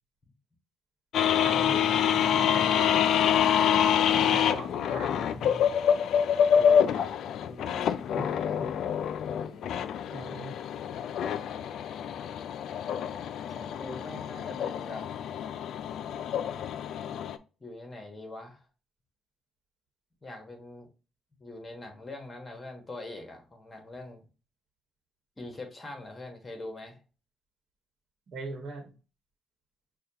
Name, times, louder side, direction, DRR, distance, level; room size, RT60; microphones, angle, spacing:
sound 1, 1.1-17.4, left 8 dB, 75° left, 0.3 m, -26 dB
voice 1, 1.4-3.5 4.1-5.7 8.2-8.9 10.1-10.6 28.3-28.9, right 2 dB, 65° right, 4 dB, 1.1 m, -41 dB
voice 2, 6.5-8.6 9.3-9.8 13.5-15.0 17.6-18.6 20.2-20.9 21.4-24.3 25.4-27.0, left 2 dB, 25° left, 4 dB, 1.2 m, -43 dB
6.2 x 2.3 x 2.8 m, 0.33 s
cardioid pair, 90°, 0 cm